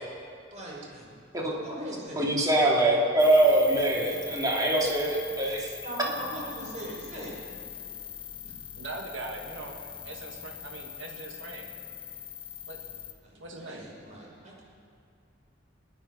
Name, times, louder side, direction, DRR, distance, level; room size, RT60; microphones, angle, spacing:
voice 1, 0.5-1.2 1.5-2.3 5.8-7.4 8.4-8.5 13.2-14.6, right 1 dB, 40° right, -4 dB, 4.3 m, -40 dB
voice 2, 2.2-5.7, right 1 dB, 20° right, -2 dB, 2.3 m, -23 dB
sound 1, 3.2-13.1, left 9 dB, 30° left, 1.0 m, -42 dB
voice 3, 8.7-9.8 10.0-11.7 12.7-12.8 13.3-13.9, right 2 dB, 80° right, 1 dB, 1.6 m, -41 dB
20.5 x 10.5 x 5.4 m, 2.3 s
head